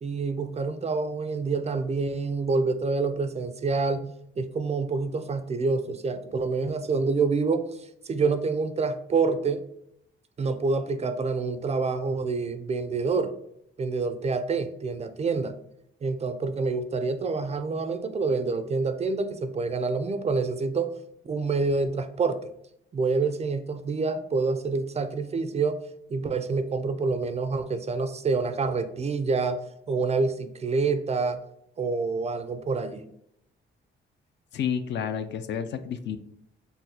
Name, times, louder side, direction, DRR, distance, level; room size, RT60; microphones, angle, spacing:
voice 1, 0.0-4.0 4.4-9.6 10.4-13.4 13.8-15.5 16.0-20.9 21.2-22.4 22.9-25.8 26.1-29.6 29.9-31.4 31.8-33.1, right 4 dB, 30° right, 10 dB, 0.3 m, -27 dB
voice 2, 34.5-36.2, left 8 dB, 60° left, 10 dB, 0.4 m, -30 dB
4.0 x 2.1 x 2.7 m, 0.76 s
cardioid pair, 80°, 21 cm